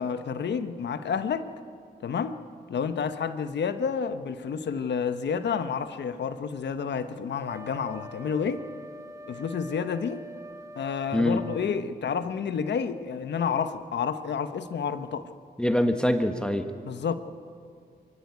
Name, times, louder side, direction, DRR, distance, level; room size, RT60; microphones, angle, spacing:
voice 1, 0.0-1.5 2.0-2.3 2.7-8.6 9.3-10.3 10.7-15.3 16.8-17.2, left 6 dB, 80° left, 10 dB, 1.0 m, -30 dB
Wind instrument woodwind instrument, 7.4-11.9, equal, 20° right, 1.4 m, -44 dB
voice 2, 15.6-16.7, left 1 dB, 5° left, 7 dB, 1.5 m, -24 dB
24.0 x 14.5 x 9.5 m, 2.3 s
cardioid pair, 70°, 18 cm